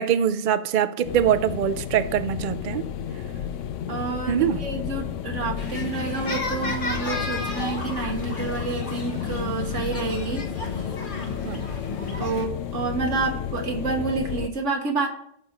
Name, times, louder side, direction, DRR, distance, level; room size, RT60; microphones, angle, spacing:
voice 1, 0.0-2.9 4.3-4.6 11.4-11.6, right 9 dB, 55° right, 0.6 m, -23 dB
sound 1, 1.0-14.5, left 9 dB, 80° left, 1.0 m, -32 dB
voice 2, 3.9-10.9 12.2-15.1, right 4 dB, 75° right, 1.5 m, -29 dB
sound 2, 5.6-12.5, left 3 dB, 45° left, 1.3 m, -33 dB
14.0 x 6.0 x 2.9 m
omnidirectional pair, 1.3 m